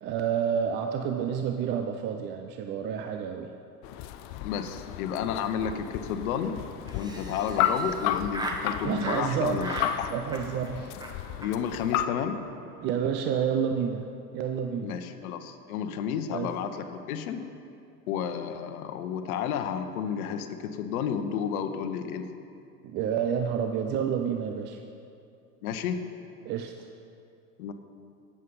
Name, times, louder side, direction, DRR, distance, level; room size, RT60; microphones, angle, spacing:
voice 1, 0.0-3.5 8.8-10.9 12.8-14.1 14.3-15.0 16.3-16.5 22.8-24.8 26.4-26.9, right 7 dB, 25° right, 5 dB, 0.4 m, -29 dB
sound 1, 3.8-12.1, left 10 dB, 35° left, 0.5 m, -33 dB
voice 2, 4.4-6.6 6.9-10.1 11.4-12.4 14.8-17.4 18.1-22.2 25.6-26.0 27.6-27.7, left 8 dB, 60° left, 8 dB, 1.1 m, -31 dB
Laughter, 6.8-8.6 9.0-9.3 9.6-9.9 10.2-10.7 11.0-11.1 11.4-11.5 11.8-11.9 12.1-12.3 12.5-12.9, right 1 dB, 10° right, 1.2 m, -38 dB
18.0 x 7.6 x 4.0 m, 2.5 s
hypercardioid pair, 100°, 48 cm